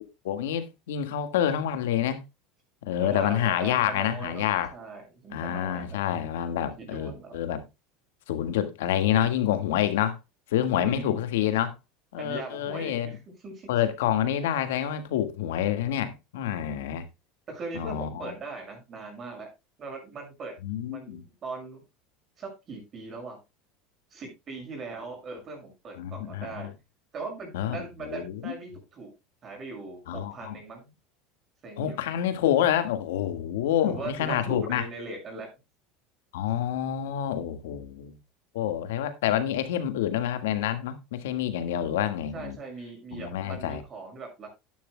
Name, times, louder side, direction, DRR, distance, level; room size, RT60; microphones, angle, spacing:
voice 1, 0.2-2.2 2.8-4.7 5.3-7.6 8.3-10.2 10.5-11.7 12.1-13.1 13.7-17.1 17.7-18.3 20.6-21.2 26.0-26.7 27.5-28.5 30.1-30.6 31.8-34.8 36.3-38.1 38.5-42.6 43.1-43.8, left 10 dB, 90° left, 1.6 m, -27 dB
voice 2, 3.0-4.5 4.7-6.0 6.8-7.3 10.7-11.2 12.2-13.2 13.4-13.7 17.5-19.5 19.8-20.5 20.9-21.8 22.4-23.4 24.1-26.7 27.1-29.1 29.4-30.9 31.6-32.0 33.8-35.5 42.3-44.5, right 3 dB, 35° right, 6.3 m, -39 dB
11.5 x 11.0 x 2.2 m
supercardioid pair, 120°, 0 cm